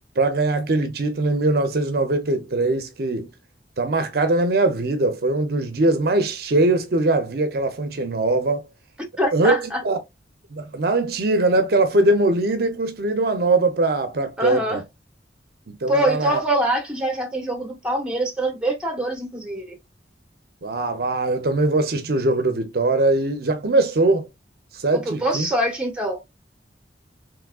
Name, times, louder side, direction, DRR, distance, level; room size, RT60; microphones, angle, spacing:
voice 1, 0.2-3.3 3.8-8.7 9.3-10.0 10.5-14.8 15.7-16.4 20.6-24.3 24.7-25.5, right 2 dB, 55° right, 0.6 m, -21 dB
voice 2, 9.2-9.8 14.4-14.8 15.9-19.7 24.9-26.2, right 1 dB, 5° right, 0.9 m, -24 dB
3.5 x 3.1 x 2.2 m
head